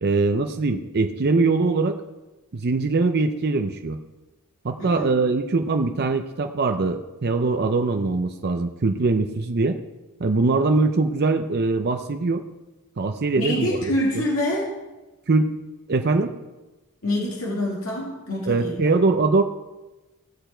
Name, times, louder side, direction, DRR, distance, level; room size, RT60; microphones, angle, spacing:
voice 1, 0.0-2.0 2.5-4.0 4.6-9.8 10.2-12.4 13.0-13.7 14.2-14.3 15.3-15.5 15.9-16.3 18.5-19.4, right 3 dB, 45° right, 6 dB, 0.6 m, -22 dB
voice 2, 4.8-5.1 13.3-14.7 17.0-19.0, left 1 dB, 65° left, -4 dB, 2.6 m, -26 dB
17.0 x 6.8 x 4.5 m, 1.1 s
head